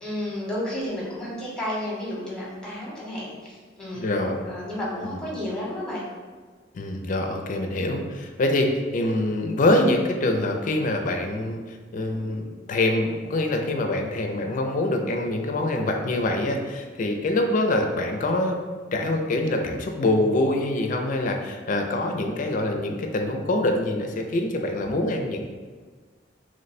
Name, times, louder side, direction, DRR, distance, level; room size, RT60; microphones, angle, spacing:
voice 1, 0.0-4.1 4.4-6.0, left 1 dB, 5° left, -6 dB, 0.8 m, -32 dB
voice 2, 3.9-4.4 5.0-5.2 6.7-18.6 18.9-25.4, left 1 dB, 45° left, 3 dB, 0.4 m, -25 dB
3.0 x 2.1 x 4.1 m, 1.5 s
head